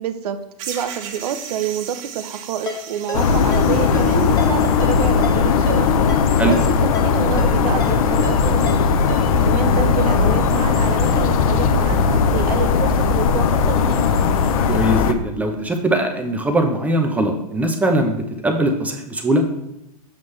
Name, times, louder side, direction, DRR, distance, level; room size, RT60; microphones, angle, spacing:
voice 1, 0.0-6.0 6.4-6.6 7.0-8.9 9.4-14.0, right 9 dB, 75° right, 10 dB, 0.7 m, -27 dB
sound 1, 0.6-5.3, right 8 dB, 55° right, 1.3 m, -36 dB
Ringtone, 2.7-9.5, left 3 dB, 20° left, 1.1 m, -34 dB
sound 2, 3.1-15.1, left 5 dB, 60° left, 0.7 m, -18 dB
voice 2, 14.7-19.4, right 1 dB, 5° right, 3 dB, 0.6 m, -20 dB
7.3 x 6.3 x 3.2 m, 0.86 s
hypercardioid pair, 140°, 20 cm